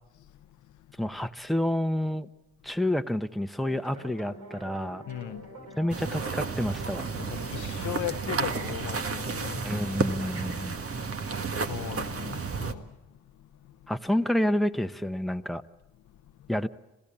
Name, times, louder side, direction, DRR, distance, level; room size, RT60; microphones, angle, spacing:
voice 1, 1.0-2.3 2.6-5.0 5.8-7.1 9.6-10.8 13.9-15.6 16.5-16.7, left 1 dB, ahead, 1.0 m, -29 dB
sound 1, 3.6-10.6, right 2 dB, 70° right, 4.5 m, -46 dB
voice 2, 5.1-5.4 7.1-9.6 11.7-12.8, left 13 dB, 85° left, 0.8 m, -37 dB
sound 2, 5.9-12.7, right 4 dB, 50° right, 1.7 m, -32 dB
27.0 x 16.5 x 8.7 m
supercardioid pair, 55°, 29 cm